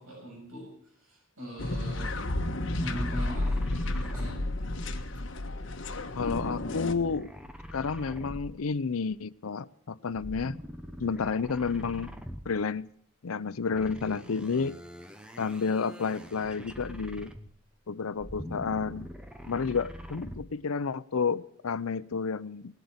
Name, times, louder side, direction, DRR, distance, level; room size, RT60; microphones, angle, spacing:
voice 1, 0.0-2.2 2.8-3.7 3.9-4.5, right 1 dB, 80° right, -2 dB, 7.0 m, -42 dB
sound 1, 1.6-6.9, left 1 dB, 60° left, 1.4 m, -32 dB
sound 2, 2.2-5.2 6.1-8.8 10.1-12.7 13.7-17.7 18.1-20.6, equal, 5° right, 0.9 m, -43 dB
voice 2, 6.1-7.3 7.7-10.6 11.0-12.1 12.5-12.9 13.2-14.8 15.4-17.3 17.9-19.1 19.5-22.8, left 5 dB, 85° left, 16 dB, 0.6 m, -31 dB
18.5 x 8.1 x 9.6 m, 0.63 s
head